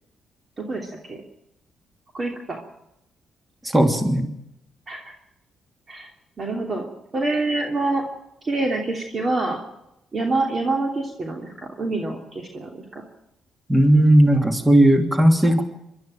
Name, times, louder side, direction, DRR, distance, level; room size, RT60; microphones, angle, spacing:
voice 1, 0.6-1.2 2.1-2.6 4.9-5.1 5.9-6.1 6.4-6.9 7.1-8.0 8.4-9.6 10.1-13.0, right 2 dB, 40° right, 2 dB, 3.0 m, -26 dB
voice 2, 3.6-4.3 13.7-15.6, right 1 dB, 15° right, 6 dB, 2.8 m, -16 dB
24.0 x 12.5 x 9.1 m, 0.84 s
cardioid pair, 80°, 0 cm